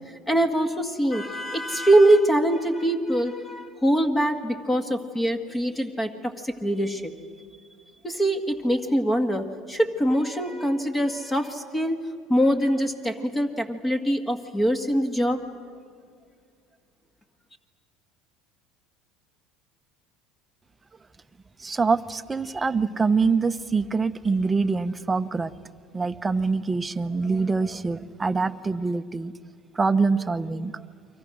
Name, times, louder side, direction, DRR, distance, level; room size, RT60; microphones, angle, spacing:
voice 1, 0.3-7.1 8.0-12.0 12.3-15.4, right 1 dB, 15° left, 6 dB, 1.9 m, -23 dB
voice 2, 21.6-25.5 25.9-29.3 29.7-30.8, right 4 dB, 15° right, 10 dB, 1.0 m, -24 dB
30.0 x 24.0 x 6.4 m, 2.1 s
supercardioid pair, 110°, 0 cm